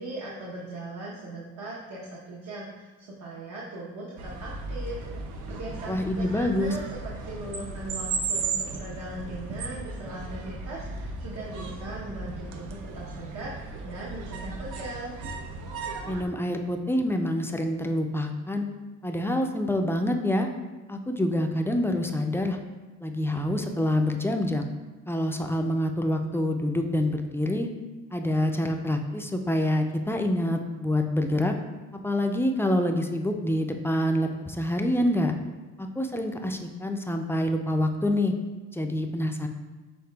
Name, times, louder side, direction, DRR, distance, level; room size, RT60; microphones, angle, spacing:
voice 1, 0.0-5.0 5.4-15.1, right 2 dB, 70° right, -5 dB, 0.9 m, -39 dB
sound 1, 4.2-16.2, right 4 dB, 85° right, 0.6 m, -35 dB
voice 2, 5.9-6.8 16.1-18.7 19.0-20.5 20.9-22.6 23.0-24.7 25.1-27.7 28.1-31.6 31.9-35.4 35.8-38.3 38.7-39.5, left 1 dB, 10° left, 4 dB, 0.3 m, -26 dB
6.6 x 3.5 x 2.3 m, 1.3 s
cardioid pair, 90°, 30 cm